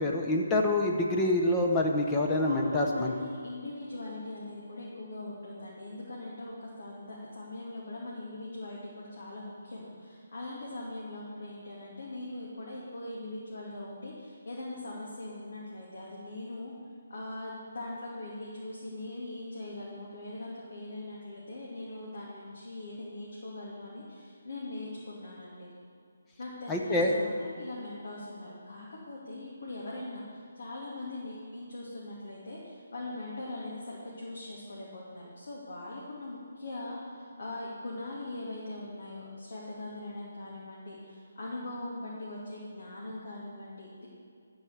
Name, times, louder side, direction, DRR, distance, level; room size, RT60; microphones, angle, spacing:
voice 1, 0.0-3.1 26.7-27.2, left 1 dB, 15° left, 0 dB, 0.8 m, -26 dB
voice 2, 2.5-16.7 17.1-25.7 26.4-44.1, left 2 dB, 70° left, -5 dB, 2.4 m, -41 dB
13.0 x 4.8 x 7.2 m, 2.2 s
hypercardioid pair, 160°, 0 cm